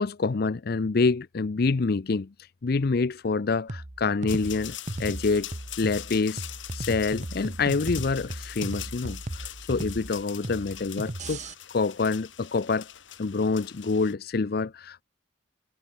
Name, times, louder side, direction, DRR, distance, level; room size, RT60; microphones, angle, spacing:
voice 1, 0.0-2.3 2.6-6.4 6.7-11.4 11.7-12.9 13.2-15.0, left 4 dB, 55° left, 0.5 m, -27 dB
sound 1, 3.7-11.5, right 1 dB, 40° right, 1.3 m, -36 dB
sound 2, 4.3-14.1, left 13 dB, 75° left, 2.1 m, -42 dB
head